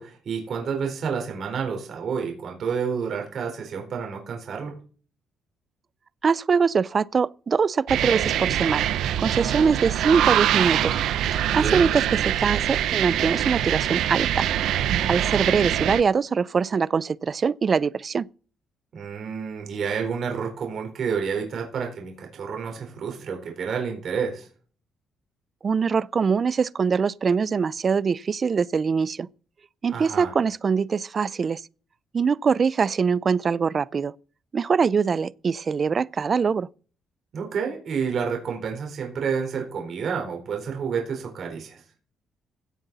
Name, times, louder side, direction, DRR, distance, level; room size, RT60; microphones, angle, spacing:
voice 1, 0.0-4.7 11.5-11.9 18.9-24.5 29.9-30.3 37.3-41.8, right 6 dB, 60° right, 4.3 m, -29 dB
voice 2, 6.2-8.9 9.2-11.0 11.3-14.5 15.1-18.3 25.6-29.3 29.8-31.6 32.1-34.1 34.5-36.7, right 5 dB, 40° right, 0.5 m, -23 dB
sound 1, 7.9-16.0, right 11 dB, 80° right, 0.8 m, -24 dB
16.5 x 7.7 x 4.1 m
cardioid pair, 90°, 0 cm